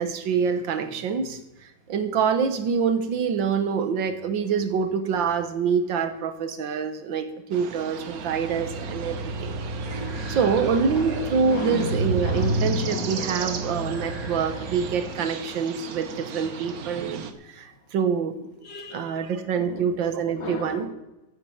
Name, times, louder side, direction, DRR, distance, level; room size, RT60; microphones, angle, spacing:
voice 1, 0.0-1.4 1.9-9.6 10.3-17.2 17.5-18.3 18.9-20.9, right 6 dB, 75° right, 9 dB, 1.8 m, -26 dB
sound 1, 7.5-17.3, right 7 dB, 55° right, 1.3 m, -37 dB
sound 2, 8.0-15.4, right 1 dB, 40° right, 2.3 m, -31 dB
voice 2, 9.8-10.6 11.5-11.9 12.2-13.2 18.6-19.2 19.5-19.9 20.4-20.9, equal, 65° left, 4 dB, 2.4 m, -36 dB
15.5 x 7.9 x 5.7 m, 0.99 s
omnidirectional pair, 2.1 m